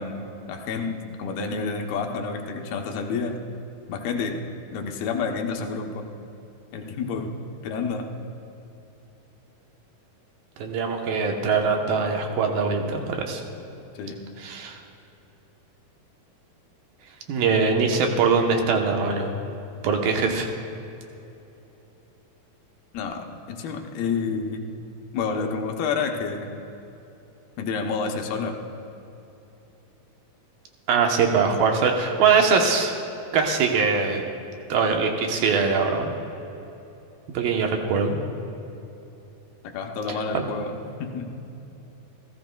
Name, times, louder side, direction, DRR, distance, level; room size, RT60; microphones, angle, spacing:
voice 1, 0.0-3.4 3.9-4.4 4.7-6.1 6.7-7.4 7.6-8.1 14.0-14.2 22.9-24.7 25.1-26.5 27.6-28.6 39.7-41.3, left 5 dB, 80° left, 3 dB, 2.8 m, -29 dB
voice 2, 10.6-13.4 14.4-14.8 17.3-19.3 19.8-20.5 30.9-32.9 33.3-34.3 34.7-36.1 37.3-38.2, right 5 dB, 75° right, 2 dB, 2.6 m, -22 dB
28.5 x 15.0 x 2.3 m, 2.9 s
omnidirectional pair, 4.5 m